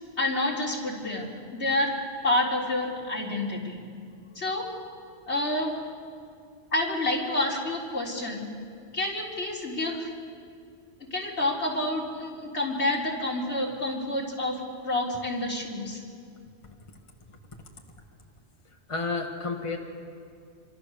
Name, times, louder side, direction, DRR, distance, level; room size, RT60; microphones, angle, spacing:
voice 1, 0.2-1.9 2.2-3.8 4.3-4.6 5.3-5.7 6.7-8.4 8.9-10.1 11.1-14.6 14.8-16.0, left 1 dB, 75° left, -3 dB, 4.0 m, -28 dB
voice 2, 18.7-19.8, left 3 dB, 25° left, 1 dB, 1.9 m, -32 dB
26.5 x 25.0 x 6.9 m, 2.3 s
omnidirectional pair, 1.2 m